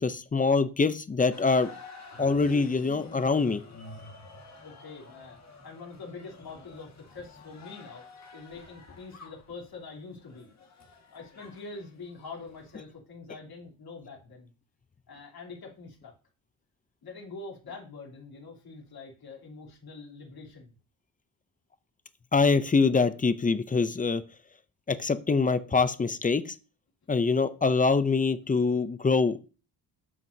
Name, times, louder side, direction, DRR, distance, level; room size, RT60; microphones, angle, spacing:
voice 1, 0.0-1.7 2.2-3.6 22.3-24.2 24.9-26.5 27.1-29.4, left 4 dB, 20° left, 13 dB, 0.5 m, -24 dB
sound 1, 1.3-12.9, left 3 dB, 40° left, 1.7 m, -49 dB
voice 2, 4.5-5.4 5.6-8.0 8.3-10.5 11.1-14.5 15.1-16.1 17.0-20.7, left 4 dB, 55° left, -1 dB, 3.1 m, -44 dB
9.8 x 7.6 x 2.7 m, 0.34 s
wide cardioid pair, 160°, 43 cm